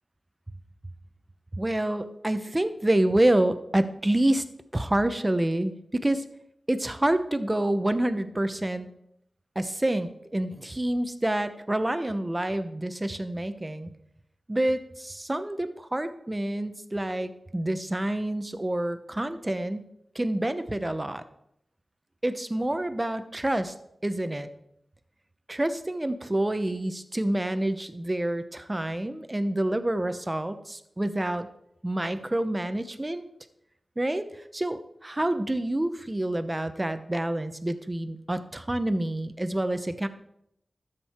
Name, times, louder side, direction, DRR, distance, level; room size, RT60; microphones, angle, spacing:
voice 1, 1.5-4.4 4.7-6.2 6.7-8.9 9.5-13.9 14.5-19.9 20.1-21.2 22.2-23.7 24.0-24.5 25.5-31.5 31.8-33.2 34.0-40.1, right 1 dB, 20° right, 10 dB, 0.9 m, -27 dB
13.0 x 7.7 x 4.5 m, 0.77 s
wide cardioid pair, 70°, 0 cm